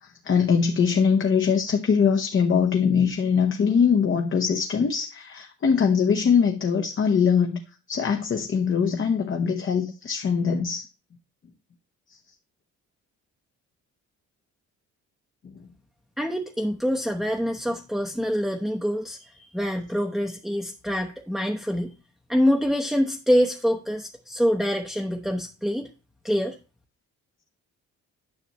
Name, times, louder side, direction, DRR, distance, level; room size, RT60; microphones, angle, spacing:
voice 1, 0.0-7.6 7.9-10.9, left 6 dB, 40° left, 1.0 m, -22 dB
voice 2, 16.2-21.9 22.3-25.9 26.2-26.6, equal, ahead, 0.9 m, -25 dB
9.8 x 6.0 x 3.0 m
cardioid pair, 90°, 30 cm